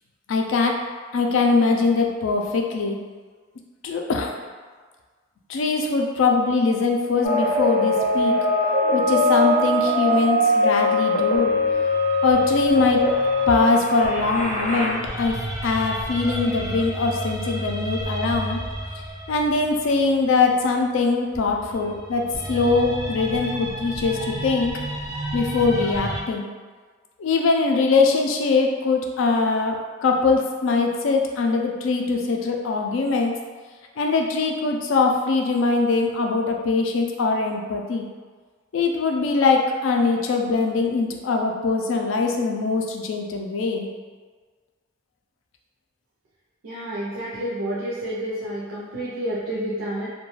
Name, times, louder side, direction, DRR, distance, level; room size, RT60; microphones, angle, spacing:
voice 1, 0.3-0.8 1.1-3.0 3.8-4.3 5.5-8.4 8.9-11.6 12.2-13.1 13.5-15.4 15.6-18.6 19.3-24.7 25.3-26.5 27.2-33.4 34.0-38.1 38.7-43.9, left 4 dB, 80° left, 2 dB, 0.4 m, -22 dB
sound 1, 7.2-14.9, left 2 dB, 35° left, 0.5 m, -21 dB
sound 2, 11.3-20.5 21.3-26.2, right 1 dB, 20° right, 0.3 m, -33 dB
voice 2, 46.6-50.1, right 1 dB, 85° right, -7 dB, 0.5 m, -29 dB
2.3 x 2.2 x 3.0 m, 1.5 s
head